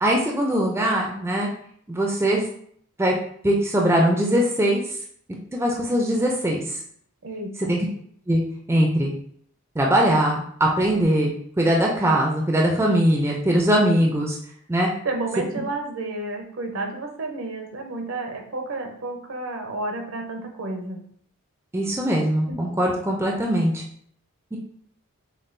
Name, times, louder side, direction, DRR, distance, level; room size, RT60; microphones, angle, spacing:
voice 1, 0.0-1.5 1.9-2.4 3.0-3.1 3.4-4.8 5.5-6.6 7.7-7.9 8.3-8.4 8.7-9.1 9.8-14.4 14.7-14.9 21.7-23.8 24.5-24.6, right 1 dB, 10° right, -1 dB, 0.4 m, -21 dB
voice 2, 7.2-7.8 15.0-21.0 22.5-22.6, right 2 dB, 65° right, 3 dB, 0.7 m, -31 dB
5.3 x 2.3 x 2.6 m, 0.62 s
head